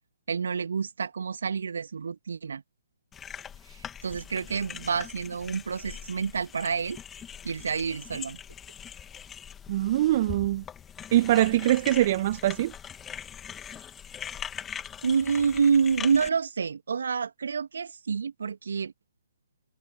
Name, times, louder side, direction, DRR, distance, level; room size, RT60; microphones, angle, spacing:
voice 1, 0.3-2.6 3.7-7.0 7.4-8.4 15.0-18.9, right 6 dB, 60° right, 2.8 m, -28 dB
sound 1, 3.1-16.3, left 8 dB, 10° left, 2.6 m, -42 dB
voice 2, 9.7-10.6 11.1-12.7, right 14 dB, 35° right, 1.5 m, -23 dB
figure-of-eight pair, 135°, 0 cm